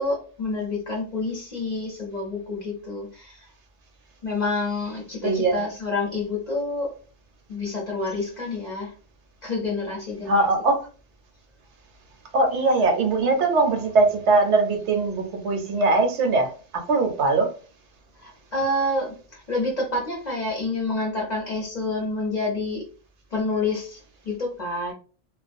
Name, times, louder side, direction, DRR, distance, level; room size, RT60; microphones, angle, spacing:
voice 1, 0.0-3.5 4.2-6.9 7.5-8.9 9.4-10.5 18.2-22.9 23.3-24.0 24.2-24.9, left 2 dB, 45° left, 0.7 m, -28 dB
voice 2, 5.2-5.6 10.3-10.9 12.3-17.5, right 3 dB, 75° right, 0.9 m, -21 dB
2.3 x 2.2 x 2.5 m
omnidirectional pair, 1.3 m